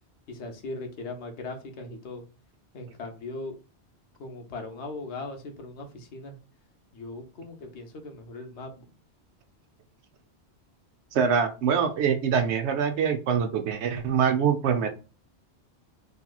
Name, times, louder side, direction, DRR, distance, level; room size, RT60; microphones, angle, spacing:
voice 1, 0.3-2.2 2.7-3.6 4.2-6.4 6.9-8.8, left 2 dB, 80° left, 5 dB, 1.0 m, -39 dB
voice 2, 11.1-14.9, right 7 dB, 80° right, 7 dB, 0.9 m, -24 dB
3.3 x 2.8 x 2.3 m, 0.34 s
omnidirectional pair, 1.1 m